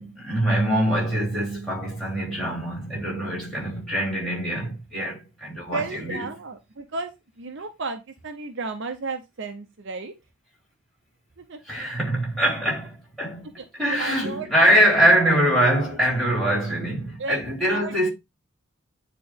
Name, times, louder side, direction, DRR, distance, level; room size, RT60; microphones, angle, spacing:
voice 1, 0.0-6.3 11.6-18.1, right 1 dB, ahead, 4.9 m, -23 dB
voice 2, 5.7-7.1 7.4-10.1 11.5-11.6 13.9-14.7 17.2-17.4 17.6-18.1, right 4 dB, 55° right, 0.7 m, -33 dB
9.2 x 3.7 x 3.5 m
head